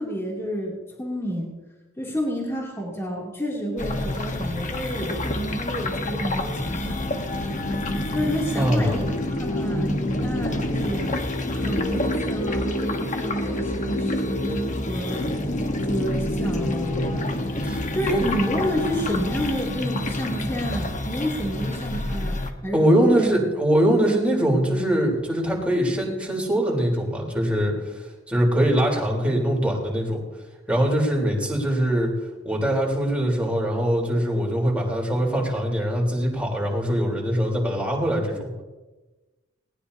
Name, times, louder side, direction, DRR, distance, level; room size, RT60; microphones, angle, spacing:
voice 1, 0.0-1.5 2.0-7.0 8.1-11.1 11.4-15.2 15.8-17.3 17.6-23.3, equal, 15° left, -4 dB, 2.9 m, -29 dB
sound 1, 3.8-22.5, left 1 dB, 40° left, 1.3 m, -27 dB
voice 2, 8.6-9.1 17.6-17.8 18.1-18.2 22.7-28.0 28.3-30.2 30.7-32.1 32.4-38.5, right 1 dB, 5° right, -2 dB, 3.8 m, -22 dB
20.0 x 19.0 x 2.9 m, 1.2 s
head